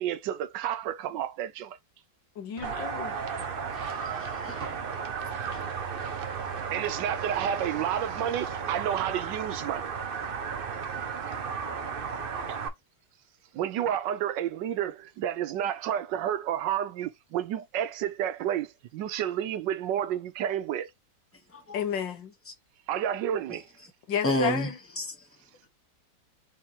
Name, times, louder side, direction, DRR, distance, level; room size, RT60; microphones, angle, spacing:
voice 1, 0.0-1.8 6.7-9.9 12.5-12.6 13.5-20.9 22.9-23.6, right 10 dB, 75° right, 1.2 m, -30 dB
voice 2, 2.4-3.2 21.7-22.3 24.1-24.8, left 8 dB, 75° left, 1.8 m, -32 dB
sound 1, 2.6-2.9 3.4-3.7 4.6-5.0 5.5-5.7 6.6-6.9 7.3-7.6, right 2 dB, 35° right, 1.6 m, -48 dB
sound 2, 2.6-12.7, right 6 dB, 55° right, 0.6 m, -34 dB
voice 3, 3.7-4.6 5.5-5.6 21.5-21.8 24.2-24.7 25.0-25.1, left 1 dB, 10° left, 0.7 m, -30 dB
4.5 x 4.3 x 2.8 m
omnidirectional pair, 2.0 m